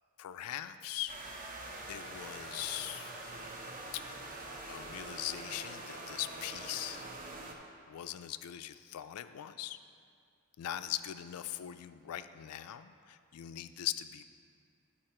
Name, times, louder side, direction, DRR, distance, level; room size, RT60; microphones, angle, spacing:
voice 1, 0.2-1.2 1.9-3.1 3.9-4.0 4.7-7.0 7.9-9.8 10.6-14.2, left 12 dB, 80° left, 11 dB, 0.3 m, -40 dB
sound 1, 1.1-7.5, right 2 dB, 40° right, 0.8 m, -44 dB
12.0 x 4.3 x 4.3 m, 2.3 s
head